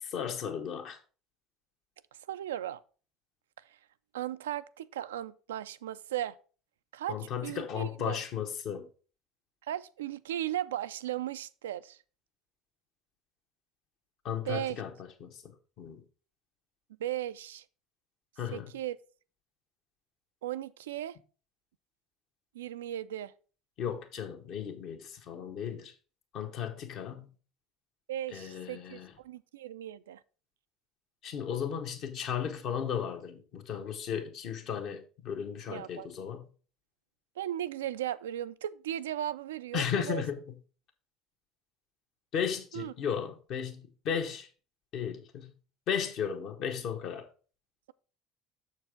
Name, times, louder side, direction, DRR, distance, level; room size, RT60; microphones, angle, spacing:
voice 1, 0.0-1.0 7.1-8.9 14.2-14.9 15.2-16.0 18.4-18.7 23.8-25.9 26.3-27.3 28.3-29.1 31.2-36.5 39.7-40.4 42.3-44.5 44.9-45.6 45.9-47.3, left 8 dB, 55° left, 1.4 m, -35 dB
voice 2, 2.3-2.8 3.6-3.8 4.1-6.4 6.9-7.2 7.4-8.2 9.6-12.0 14.4-14.8 17.0-17.6 18.5-19.0 20.4-21.2 22.5-23.3 28.1-30.2 35.7-36.1 37.4-40.2 42.7-42.9, right 12 dB, 80° right, 0.3 m, -36 dB
6.8 x 4.6 x 5.0 m
hypercardioid pair, 70°, 0 cm